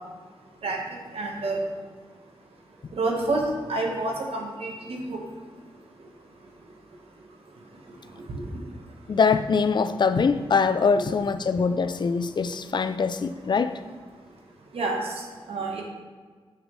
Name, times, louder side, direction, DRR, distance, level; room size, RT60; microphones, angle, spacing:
voice 1, 1.1-1.6 3.0-3.4 3.7-5.2 8.3-8.5 14.7-15.8, right 2 dB, 85° right, 0 dB, 1.3 m, -28 dB
voice 2, 9.1-13.8, left 5 dB, 50° left, 12 dB, 0.4 m, -23 dB
6.6 x 6.2 x 3.2 m, 1.5 s
wide cardioid pair, 85°, 10 cm